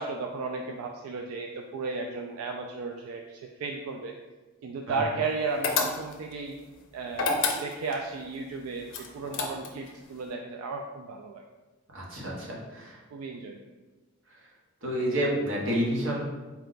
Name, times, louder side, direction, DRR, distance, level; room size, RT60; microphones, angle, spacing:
voice 1, 0.0-4.1 4.6-6.6 6.9-11.4 13.1-13.6, right 4 dB, 85° right, 2 dB, 0.3 m, -34 dB
sound 1, 5.6-6.3 7.1-8.0 8.9-9.9, left 4 dB, 60° left, 0.5 m, -28 dB
voice 2, 11.9-13.0 14.8-16.2, equal, 60° right, -3 dB, 1.0 m, -29 dB
4.3 x 2.2 x 3.8 m, 1.2 s
head